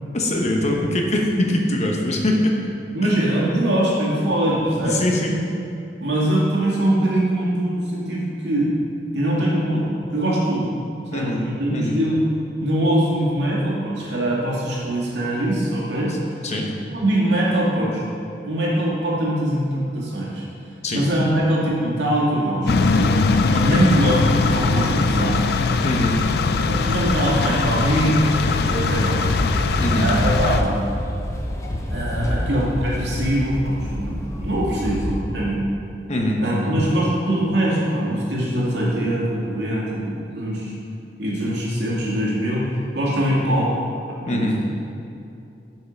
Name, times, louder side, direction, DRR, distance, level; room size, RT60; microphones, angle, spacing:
voice 1, 0.1-2.7 3.0-3.1 4.8-5.4 11.1-11.4 11.7-12.0 16.4-16.7 20.8-21.1 23.5-23.8 25.8-26.2 29.8-30.1 36.1-36.7 44.3-44.6, left 1 dB, 40° left, 0 dB, 0.9 m, -22 dB
voice 2, 2.9-5.0 6.0-8.7 9.1-10.7 11.1-12.2 12.6-16.1 16.9-18.1 18.4-20.4 20.9-23.2 23.6-25.5 26.7-29.3 29.9-30.7 31.9-35.6 36.4-40.7 41.2-42.7 42.9-43.7 44.3-44.6, right 1 dB, 75° right, -5 dB, 2.0 m, -22 dB
sound 1, 22.7-30.6, left 4 dB, 60° left, 0.4 m, -20 dB
sound 2, 29.2-35.2, equal, 15° left, 0.7 m, -28 dB
7.4 x 5.7 x 5.1 m, 2.6 s
head